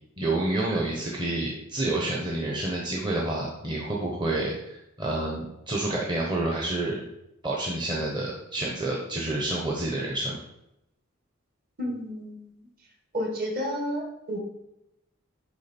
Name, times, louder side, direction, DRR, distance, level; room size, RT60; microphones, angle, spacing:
voice 1, 0.2-7.0 7.4-10.4, right 2 dB, 20° right, -3 dB, 0.9 m, -29 dB
voice 2, 11.8-12.5 13.1-14.4, equal, 45° right, 0 dB, 1.7 m, -31 dB
10.5 x 3.7 x 4.4 m, 0.86 s
head